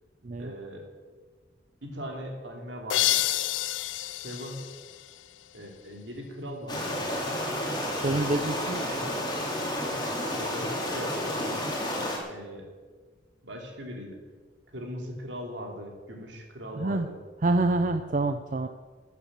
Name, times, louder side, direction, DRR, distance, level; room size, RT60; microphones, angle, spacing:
voice 1, 0.4-0.8 1.8-3.2 3.9-4.6 5.5-7.3 8.6-9.0 10.1-11.6 12.3-12.7 13.4-14.2 14.7-17.2, equal, 75° right, 1 dB, 3.0 m, -40 dB
sound 1, 2.9-5.6, left 16 dB, 90° left, 0.3 m, -29 dB
sound 2, 6.7-12.2, left 1 dB, 25° left, 2.8 m, -31 dB
voice 2, 8.0-8.8 16.7-17.1 17.4-18.7, right 2 dB, 45° right, 8 dB, 0.5 m, -26 dB
13.0 x 8.4 x 7.4 m, 1.4 s
head